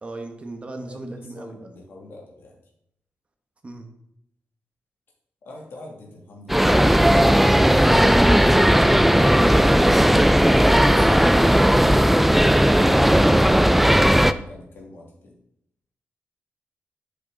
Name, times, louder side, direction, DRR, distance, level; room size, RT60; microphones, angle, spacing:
voice 1, 0.0-1.7 3.6-3.9, right 2 dB, 30° right, 4 dB, 1.1 m, -37 dB
voice 2, 0.9-2.6 5.4-7.0 10.4-12.3 13.1-15.4, left 2 dB, 70° left, -2 dB, 2.4 m, -43 dB
sound 1, 6.5-14.3, equal, 5° right, 0.4 m, -16 dB
8.6 x 6.4 x 3.8 m, 0.76 s
wide cardioid pair, 110°, 4 cm